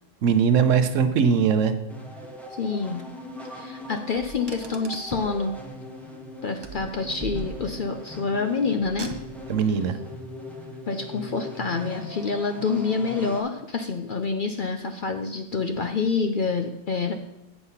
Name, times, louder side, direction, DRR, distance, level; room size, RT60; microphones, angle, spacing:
voice 1, 0.2-1.7 9.5-10.0, right 7 dB, 75° right, 10 dB, 1.1 m, -20 dB
sound 1, 1.9-13.4, left 1 dB, ahead, 1.0 m, -40 dB
voice 2, 2.5-3.0 3.5-5.6 6.4-9.1 10.9-17.1, left 4 dB, 55° left, 6 dB, 0.6 m, -27 dB
Car, 4.2-5.4 6.6-7.9 8.8-9.6, right 5 dB, 30° right, 0.5 m, -39 dB
8.2 x 5.7 x 5.6 m, 0.91 s
omnidirectional pair, 1.3 m